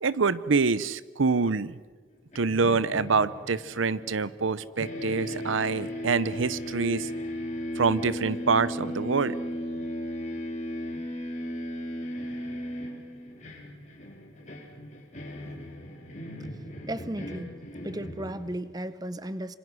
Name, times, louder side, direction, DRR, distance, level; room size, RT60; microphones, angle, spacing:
voice 1, 0.0-1.8 2.3-7.1 7.8-9.4, right 4 dB, 80° right, 17 dB, 0.8 m, -26 dB
sound 1, 2.3-4.5 4.8-18.7, equal, 35° left, 4.2 m, -36 dB
voice 2, 16.8-17.5 17.8-19.5, right 1 dB, 20° right, 13 dB, 0.8 m, -35 dB
26.5 x 25.5 x 6.3 m, 1.4 s
head